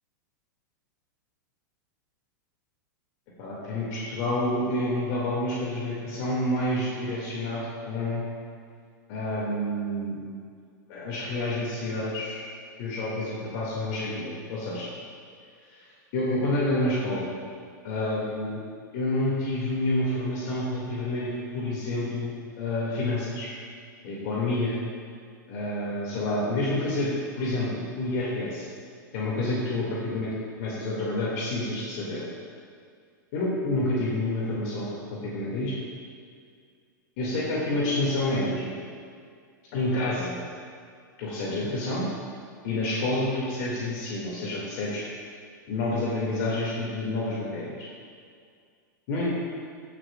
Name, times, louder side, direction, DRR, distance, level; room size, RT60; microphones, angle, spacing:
voice 1, 3.4-8.2 9.1-10.2 10.9-12.4 12.8-14.9 15.7-15.8 16.1-17.3 17.8-18.6 18.9-23.5 24.0-24.8 25.5-28.7 29.1-30.3 30.6-32.2 33.3-35.7 37.2-38.7 39.7-40.4 41.2-42.0 42.6-45.0 45.7-47.8 49.1-49.3, left 1 dB, 55° left, -6 dB, 2.2 m, -28 dB
15.0 x 6.0 x 2.4 m, 2.2 s
hypercardioid pair, 115°, 11 cm